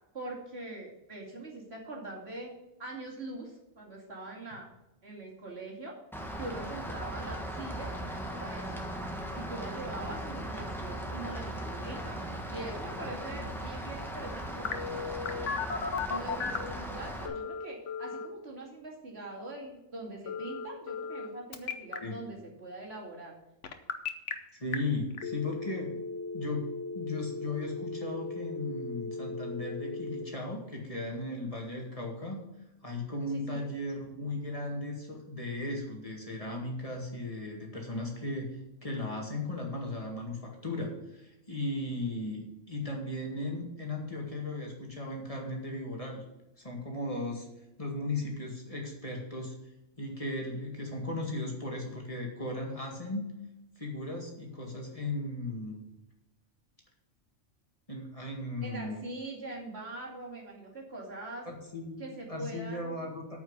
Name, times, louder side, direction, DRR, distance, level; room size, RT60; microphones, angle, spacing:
voice 1, 0.1-2.5 2.8-4.7 5.0-5.9 6.4-8.8 9.3-12.2 12.5-15.6 16.0-23.3 33.3-33.6 58.6-61.5 62.0-63.1, right 2 dB, 55° right, -3 dB, 2.8 m, -43 dB
Rain, 6.1-17.3, equal, ahead, 1.4 m, -38 dB
Telephone, 14.6-16.7 17.2-18.3 20.3-21.3 21.5-22.0 23.6-24.3 24.7-24.8 25.2-30.2, left 5 dB, 75° left, 1.3 m, -36 dB
voice 2, 24.5-25.9 26.3-26.7 26.9-32.4 32.8-38.5 38.8-46.2 46.6-47.5 47.8-49.6 50.0-53.3 53.8-55.8 57.9-59.0 61.4-62.0 62.3-63.4, left 2 dB, 30° left, -1 dB, 2.1 m, -36 dB
9.0 x 5.7 x 8.0 m, 0.93 s
omnidirectional pair, 1.3 m